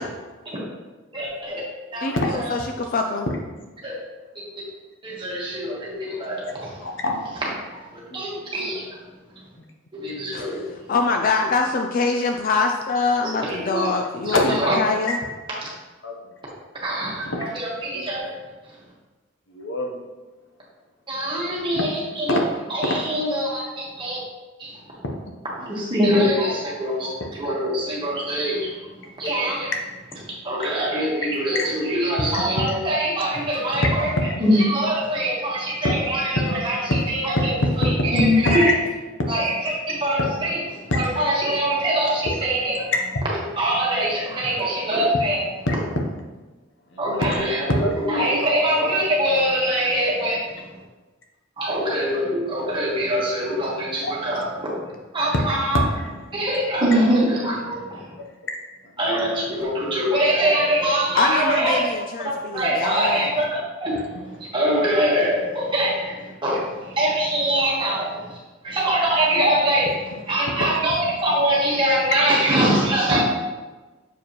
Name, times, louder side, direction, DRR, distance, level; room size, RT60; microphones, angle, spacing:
voice 1, 1.1-1.6 1.9-2.5 3.8-3.9 5.0-6.7 7.9-9.0 9.9-10.6 13.4-13.9 14.2-14.7 16.8-18.3 21.1-22.4 22.7-24.2 24.6-24.7 25.6-28.7 29.2-29.7 30.4-34.1 34.4-38.7 39.3-40.6 40.9-42.9 43.6-45.4 47.0-50.6 51.6-54.7 55.1-55.8 56.3-58.2 59.0-61.9 62.5-68.2 68.6-69.9 70.3-73.2, right 1 dB, 25° right, -5 dB, 1.5 m, -23 dB
voice 2, 2.0-3.3 10.3-10.5 10.9-15.2 61.1-63.3, left 4 dB, 40° left, 4 dB, 0.3 m, -24 dB
voice 3, 6.8-7.4 8.1-8.4 14.3-14.6 15.1-15.3 16.0-16.1 17.0-17.4 17.9-18.0 19.5-20.0 22.3-22.5 22.8-23.0 27.2-27.3 29.2-29.7 31.3-31.7 32.2-32.3 33.8-33.9 35.8-36.0 36.5-37.1 38.0-38.1 38.4-38.7 40.2-41.0 42.9-43.0 45.7-45.8 46.9-47.9 54.0-54.1 55.3-55.4 55.7-55.9 58.5-58.6 70.5-70.8, left 1 dB, 60° left, 2 dB, 0.9 m, -25 dB
6.9 x 4.7 x 3.0 m, 1.2 s
head